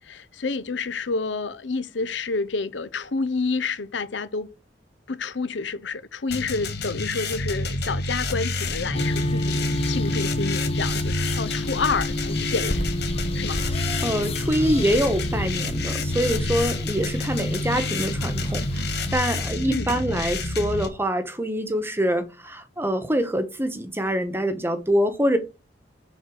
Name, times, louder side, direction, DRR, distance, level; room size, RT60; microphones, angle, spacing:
voice 1, 0.1-4.5 5.1-12.9 13.3-13.6 19.7-19.9, left 4 dB, 75° left, 0.7 m, -29 dB
sound 1, 6.3-20.9, left 2 dB, 60° left, 1.6 m, -29 dB
sound 2, 8.9-19.1, left 1 dB, 35° left, 0.9 m, -29 dB
voice 2, 14.0-18.9 19.1-25.4, equal, 15° right, 1.1 m, -25 dB
7.9 x 4.1 x 6.3 m
head